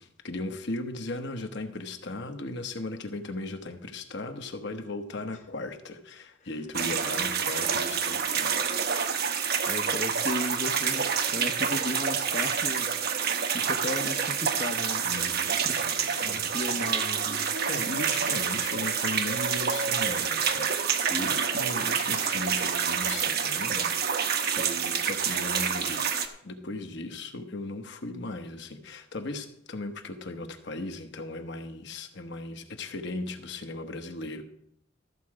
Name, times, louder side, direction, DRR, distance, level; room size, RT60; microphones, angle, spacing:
voice 1, 0.0-8.7 15.0-16.7 17.7-23.9 24.3-34.4, left 2 dB, 60° left, 6 dB, 1.1 m, -37 dB
sound 1, 6.7-26.3, right 7 dB, 55° right, 0.9 m, -28 dB
voice 2, 9.7-12.9 13.5-15.1 15.7-17.4, left 2 dB, 40° left, 3 dB, 0.8 m, -35 dB
14.0 x 7.5 x 4.8 m, 0.74 s
head